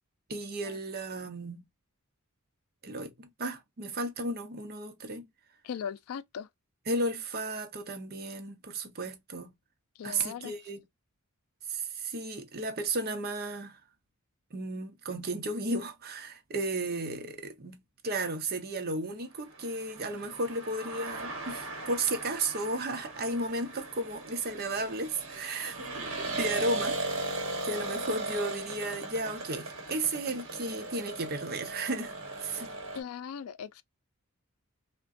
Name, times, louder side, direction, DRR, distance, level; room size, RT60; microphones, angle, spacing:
voice 1, 0.3-1.6 2.8-5.3 6.9-9.5 10.0-10.8 11.7-13.8 14.5-25.8 26.2-27.2 27.6-32.7, right 2 dB, 45° right, 0.6 m, -34 dB
voice 2, 5.6-6.5 10.0-10.6 32.9-33.8, left 7 dB, 80° left, 0.3 m, -39 dB
sound 1, 19.5-33.0, right 3 dB, 60° right, 1.0 m, -38 dB
3.4 x 2.2 x 2.4 m
head